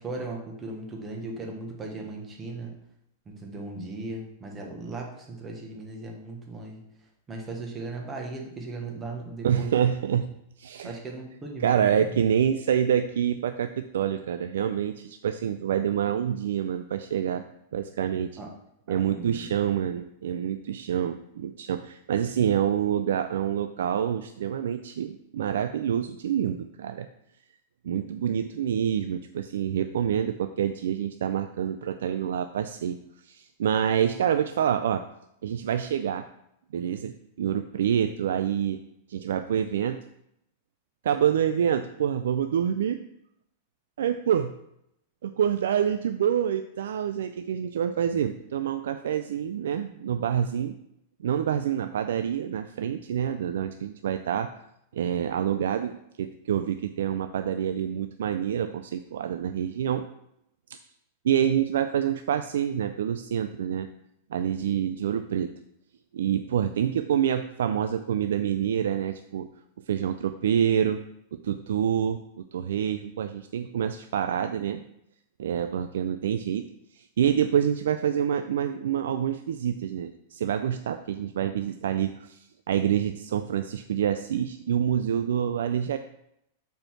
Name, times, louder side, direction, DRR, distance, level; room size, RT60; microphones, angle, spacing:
voice 1, 0.0-2.7 3.3-6.8 7.3-9.7 10.8-12.0 18.4-18.5 18.9-19.5, right 3 dB, 15° right, 1 dB, 1.2 m, -37 dB
voice 2, 9.4-11.0 11.6-17.4 17.7-18.4 18.9-27.1 27.8-33.0 33.2-35.0 35.4-36.3 36.7-38.8 39.1-40.0 41.0-43.0 44.0-44.5 45.2-50.7 51.2-54.5 54.9-60.0 61.2-63.9 64.3-65.5 66.1-69.5 69.9-71.0 71.4-74.8 75.4-76.7 76.9-86.0, right 9 dB, 90° right, 9 dB, 0.3 m, -27 dB
5.3 x 4.5 x 5.8 m, 0.78 s
supercardioid pair, 160°, 0 cm